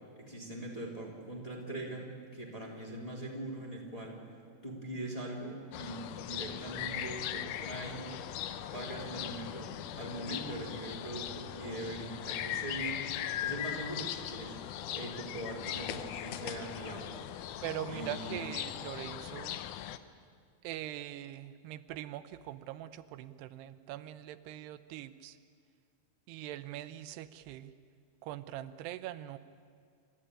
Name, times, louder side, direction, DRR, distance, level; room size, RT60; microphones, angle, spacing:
voice 1, 0.1-4.2 4.6-8.1 8.4-13.1 13.4-14.6 14.9-17.2 17.8-18.5, right 1 dB, 10° left, -2 dB, 3.0 m, -42 dB
sound 1, 5.7-20.0, left 11 dB, 90° left, 1.7 m, -39 dB
voice 2, 17.6-19.6 20.6-25.4 26.3-27.7 28.2-29.4, right 13 dB, 85° right, 12 dB, 2.8 m, -42 dB
28.0 x 13.5 x 9.9 m, 2.2 s
omnidirectional pair, 4.7 m